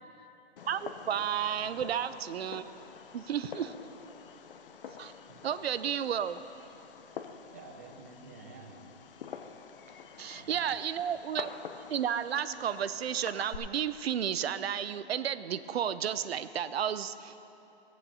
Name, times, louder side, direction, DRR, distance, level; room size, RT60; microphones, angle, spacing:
Fireworks, 0.6-13.6, left 7 dB, 55° left, 0.7 m, -47 dB
voice 1, 0.7-2.6 3.1-3.7 5.0-5.1 5.4-6.4 10.2-11.5 11.9-17.4, right 9 dB, 65° right, 14 dB, 0.6 m, -32 dB
voice 2, 7.5-9.0 9.9-10.0 10.3-10.8, right 4 dB, 15° right, 4 dB, 0.4 m, -51 dB
16.5 x 7.4 x 5.5 m, 2.9 s
hypercardioid pair, 160°, 33 cm